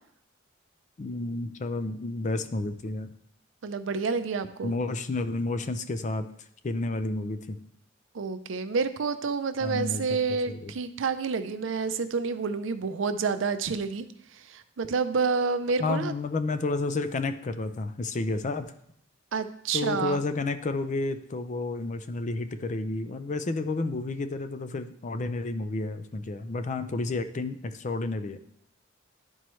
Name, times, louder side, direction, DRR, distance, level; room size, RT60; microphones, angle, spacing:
voice 1, 1.0-3.1 4.6-6.3 6.6-7.6 9.6-10.0 10.5-10.7 15.8-18.7 19.7-28.4, left 2 dB, 40° left, 10 dB, 0.5 m, -31 dB
voice 2, 3.6-4.7 8.1-14.1 14.5-16.1 19.3-20.2, right 5 dB, 70° right, 10 dB, 0.5 m, -29 dB
11.5 x 4.5 x 3.1 m, 0.70 s
head